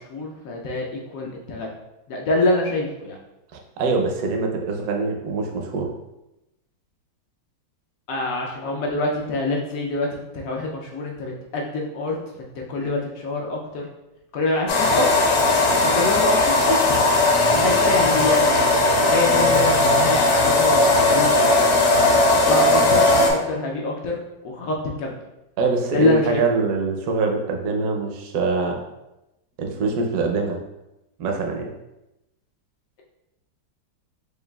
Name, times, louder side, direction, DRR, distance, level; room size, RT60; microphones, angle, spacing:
voice 1, 0.0-1.7 2.1-3.2 8.1-13.9 14.3-15.2 15.7-17.0 17.5-18.5 18.8-22.1 22.4-25.2 25.9-26.4, left 2 dB, 80° left, -1 dB, 0.7 m, -25 dB
voice 2, 3.5-5.9 25.6-28.8 29.6-30.6 31.2-31.7, right 4 dB, 70° right, 2 dB, 1.0 m, -24 dB
sound 1, 14.7-23.3, left 2 dB, 65° left, 1.0 m, -18 dB
6.8 x 2.3 x 2.3 m, 0.94 s
omnidirectional pair, 2.0 m